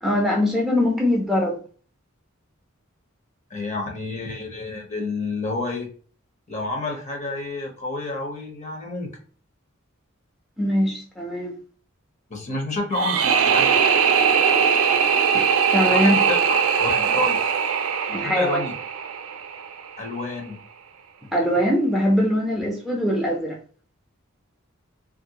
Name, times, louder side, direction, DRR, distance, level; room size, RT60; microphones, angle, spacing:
voice 1, 0.0-1.6 10.6-11.5 15.3-15.5 15.7-16.2 18.1-18.6 21.3-23.6, left 1 dB, ahead, 0.5 m, -22 dB
voice 2, 3.5-5.9 6.5-9.1 12.3-13.7 16.0-16.4 16.8-17.4 18.1-18.7 20.0-20.6, left 2 dB, 35° left, 0.8 m, -29 dB
sound 1, 12.9-19.9, right 7 dB, 75° right, 0.4 m, -20 dB
3.0 x 2.5 x 2.8 m
head